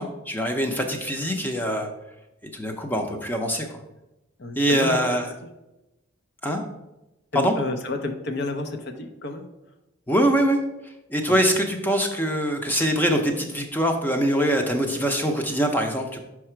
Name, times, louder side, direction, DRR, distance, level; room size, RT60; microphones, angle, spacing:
voice 1, 0.0-1.9 2.5-3.7 4.6-5.3 6.4-6.6 7.3-7.5 10.1-10.6 11.1-16.2, equal, 10° left, 4 dB, 0.6 m, -23 dB
voice 2, 4.4-5.1 7.3-9.5 11.3-11.4, left 2 dB, 55° left, 7 dB, 0.7 m, -31 dB
5.7 x 4.8 x 4.4 m, 0.96 s
head